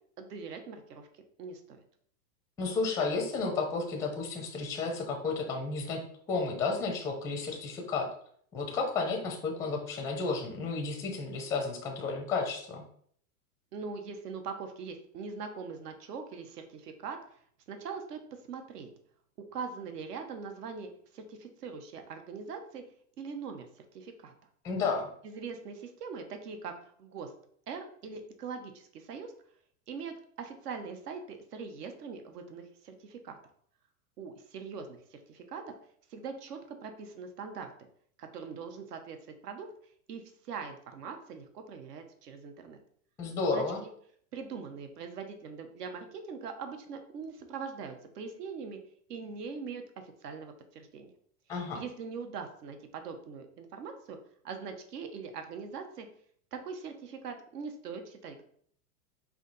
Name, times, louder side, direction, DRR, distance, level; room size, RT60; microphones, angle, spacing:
voice 1, 0.2-1.1 1.4-1.8 13.7-17.2 17.7-18.2 18.5-18.9 19.5-22.8 23.2-24.3 25.2-27.3 27.7-29.3 29.9-33.4 34.2-35.6 36.1-37.7 38.2-39.2 39.4-39.7 40.1-42.8 43.5-43.6 44.3-48.8 49.1-51.1 51.7-54.2 54.4-56.1 56.5-58.4, right 5 dB, 75° right, 6 dB, 1.0 m, -42 dB
voice 2, 2.6-8.1 8.5-12.8 24.6-25.1 43.2-43.8 51.5-51.8, left 4 dB, 5° left, 3 dB, 0.4 m, -32 dB
4.8 x 2.8 x 4.0 m, 0.62 s
hypercardioid pair, 130°, 47 cm